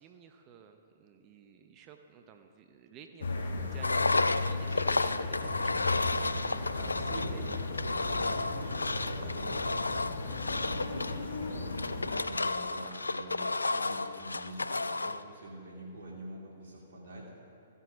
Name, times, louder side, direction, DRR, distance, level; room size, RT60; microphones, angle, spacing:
voice 1, 0.0-7.6 12.8-13.1, right 7 dB, 30° right, 6 dB, 0.8 m, -53 dB
sound 1, 3.2-12.2, left 3 dB, 70° left, 1.3 m, -36 dB
Engine, 3.8-15.2, left 3 dB, 90° left, 0.4 m, -32 dB
voice 2, 6.4-7.3 8.0-9.7 10.4-11.8 12.2-17.3, right 1 dB, 65° right, -3 dB, 2.5 m, -46 dB
14.5 x 8.1 x 5.2 m, 2.7 s
figure-of-eight pair, 120°, 0 cm